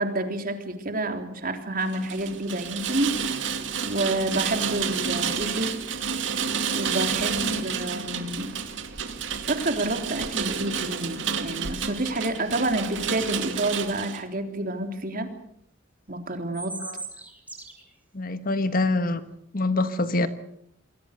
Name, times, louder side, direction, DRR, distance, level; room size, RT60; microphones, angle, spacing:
voice 1, 0.0-5.7 6.7-8.5 9.4-15.3 16.1-16.7, right 2 dB, 45° right, 6 dB, 3.5 m, -29 dB
Rain, 1.9-14.2, right 6 dB, 65° right, 2.3 m, -30 dB
sound 1, 13.0-13.2 16.3-17.8, right 3 dB, 10° right, 5.3 m, -38 dB
voice 2, 18.1-19.2 19.5-20.3, left 2 dB, 45° left, 11 dB, 1.5 m, -25 dB
28.0 x 21.5 x 6.7 m, 0.72 s
head